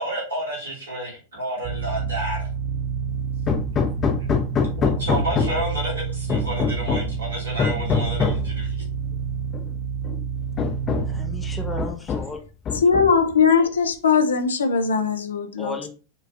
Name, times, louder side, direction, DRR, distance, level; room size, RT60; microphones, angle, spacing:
voice 1, 0.0-2.4 4.6-8.8, right 1 dB, 70° right, 2.3 m, -30 dB
sound 1, 1.6-11.8, right 6 dB, 45° right, 0.9 m, -29 dB
Hammer, 3.5-5.7 6.3-7.2 7.6-8.5 9.5-9.6 10.0-10.2 10.6-11.2 11.8-12.4 12.7-13.3, left 6 dB, 30° left, 0.6 m, -24 dB
voice 2, 11.0-12.4 15.6-15.9, left 3 dB, 10° left, 1.0 m, -34 dB
voice 3, 12.8-15.9, left 5 dB, 70° left, 0.6 m, -20 dB
6.6 x 2.4 x 2.6 m
figure-of-eight pair, 90°, 0 cm